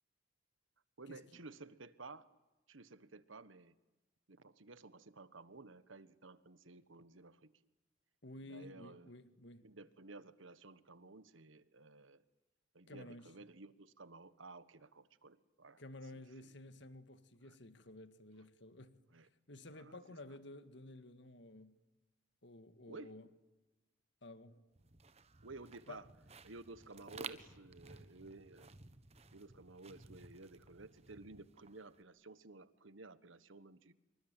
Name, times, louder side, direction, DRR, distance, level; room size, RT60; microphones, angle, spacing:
voice 1, 1.0-2.3 2.7-3.7 4.3-7.5 8.5-9.1 9.6-12.2 12.7-15.8 17.4-17.6 19.1-19.3 19.7-20.0 22.9-23.1 25.4-26.0 26.4-28.7 29.3-33.9, right 3 dB, 80° right, 1.4 m, -54 dB
voice 2, 8.2-9.7 12.9-13.3 15.8-19.0 19.5-21.8 22.4-23.3 24.2-24.6 25.9-26.0, left 1 dB, 60° left, 1.8 m, -53 dB
sound 1, 24.8-32.0, right 4 dB, 30° right, 1.4 m, -55 dB
26.5 x 24.0 x 9.1 m
head